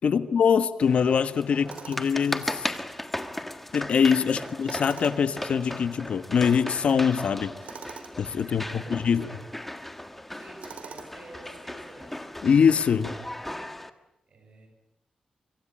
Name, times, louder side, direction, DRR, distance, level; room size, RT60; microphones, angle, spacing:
voice 1, 0.0-2.7 3.7-7.5 8.2-9.3 12.4-13.1, left 6 dB, 60° left, 11 dB, 1.3 m, -23 dB
sound 1, 0.8-13.9, left 1 dB, 5° left, 1.6 m, -37 dB
Tools, 1.7-2.2 4.6-5.4 7.6-8.2 10.6-11.3, right 6 dB, 70° right, 3.0 m, -43 dB
voice 2, 4.3-4.7 8.4-9.4 10.3-12.2 13.8-14.0 14.3-14.7, right 2 dB, 50° right, 3 dB, 7.0 m, -49 dB
27.0 x 24.0 x 8.9 m, 0.85 s
wide cardioid pair, 175°, 2 cm